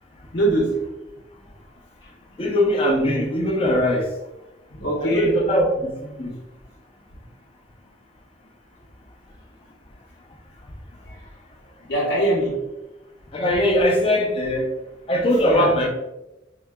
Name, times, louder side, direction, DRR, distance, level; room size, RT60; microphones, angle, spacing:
voice 1, 0.3-0.9 2.0-2.1 4.7-5.4 11.0-11.3 11.9-12.7 15.3-15.7, right 1 dB, 65° left, -4 dB, 0.7 m, -23 dB
voice 2, 2.4-4.1 5.1-5.9 6.2-6.3 13.3-14.7 15.1-15.9, left 1 dB, 30° left, 0 dB, 0.5 m, -20 dB
4.5 x 2.2 x 2.2 m, 0.99 s
head